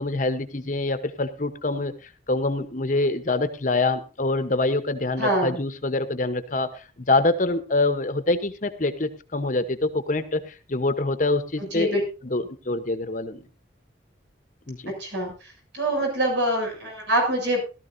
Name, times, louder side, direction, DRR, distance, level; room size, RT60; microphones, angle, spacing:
voice 1, 0.0-1.9 2.3-12.0 12.2-13.4 14.7-14.9, left 2 dB, 40° left, 10 dB, 0.9 m, -25 dB
voice 2, 5.2-5.6 11.7-12.0 15.0-15.3 15.7-17.6, right 1 dB, 70° right, 2 dB, 7.0 m, -24 dB
18.0 x 13.0 x 2.7 m, 0.32 s
head